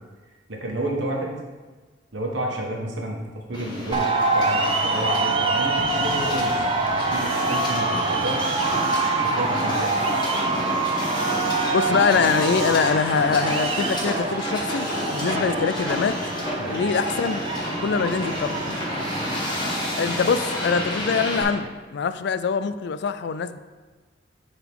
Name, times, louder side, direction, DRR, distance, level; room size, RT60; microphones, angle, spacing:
voice 1, 0.5-1.3 2.1-3.2 3.5-4.1 4.3-8.4 9.2-9.9 16.6-16.8, right 1 dB, 75° right, 0 dB, 1.4 m, -30 dB
Hiss, 3.5-21.4, left 1 dB, 25° left, 1.5 m, -30 dB
sound 1, 3.9-21.7, right 3 dB, 30° right, 0.5 m, -26 dB
voice 2, 11.7-16.2 16.7-18.8 20.0-23.6, left 5 dB, 65° left, 12 dB, 0.3 m, -24 dB
10.0 x 4.0 x 3.6 m, 1.3 s
head